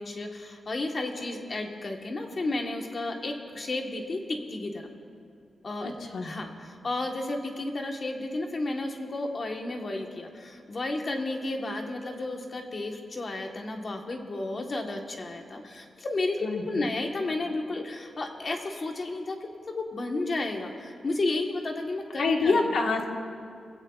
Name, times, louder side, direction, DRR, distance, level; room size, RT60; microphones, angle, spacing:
voice 1, 0.0-4.9 5.6-5.9 6.2-22.7, left 2 dB, 35° left, 3 dB, 1.3 m, -32 dB
voice 2, 5.8-6.3 16.4-16.9 22.2-23.1, left 3 dB, 80° left, 1 dB, 1.4 m, -26 dB
22.0 x 16.5 x 2.4 m, 2.3 s
wide cardioid pair, 165°, 0 cm